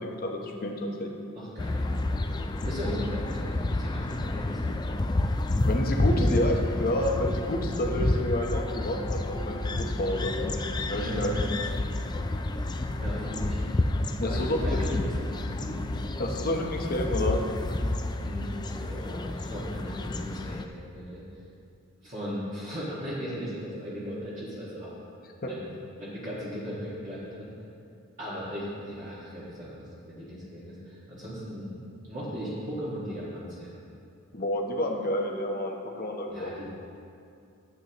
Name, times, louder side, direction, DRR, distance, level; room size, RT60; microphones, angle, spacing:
voice 1, 0.0-1.2 5.7-11.3 11.6-11.7 14.2-14.8 16.2-17.4 25.4-25.5 34.3-36.5, left 1 dB, 45° left, 1 dB, 1.0 m, -30 dB
voice 2, 1.3-1.8 2.7-4.6 11.0-11.5 13.0-13.6 14.2-15.4 15.6-15.8 18.2-21.2 22.0-24.9 25.5-25.7 26.0-27.5 28.2-31.8 32.0-33.7 36.3-36.6, equal, 35° right, -10 dB, 1.8 m, -37 dB
sound 1, 1.6-20.7, left 2 dB, 20° left, 0.3 m, -29 dB
12.0 x 8.3 x 3.0 m, 2.6 s
head